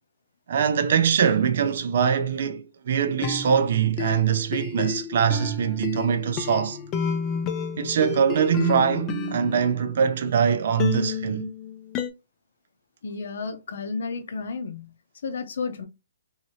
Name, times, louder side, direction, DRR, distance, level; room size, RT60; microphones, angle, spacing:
voice 1, 0.5-6.8 7.8-11.5, right 7 dB, 55° right, 0.4 m, -23 dB
sound 1, 3.1-10.3 10.8-12.1, left 6 dB, 20° left, 0.4 m, -31 dB
voice 2, 13.0-14.9 15.2-15.9, left 4 dB, 65° left, 0.7 m, -32 dB
2.9 x 2.7 x 2.7 m
hypercardioid pair, 160°, 0 cm